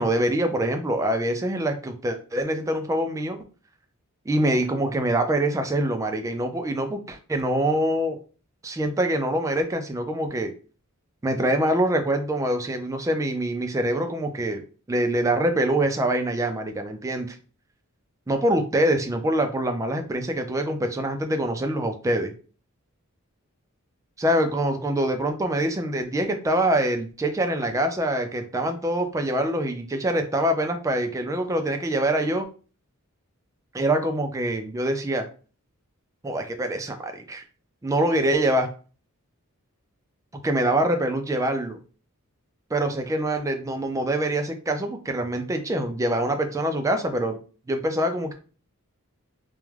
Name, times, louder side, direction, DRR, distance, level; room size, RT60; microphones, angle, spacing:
voice 1, 0.0-3.4 4.3-8.2 8.6-10.5 11.2-14.6 14.9-17.4 18.3-22.3 24.2-32.5 33.7-35.3 36.2-37.4 37.8-38.7 40.3-41.8 42.7-47.4 47.7-48.4, right 1 dB, 15° right, 6 dB, 0.3 m, -25 dB
2.3 x 2.1 x 3.1 m, 0.37 s
head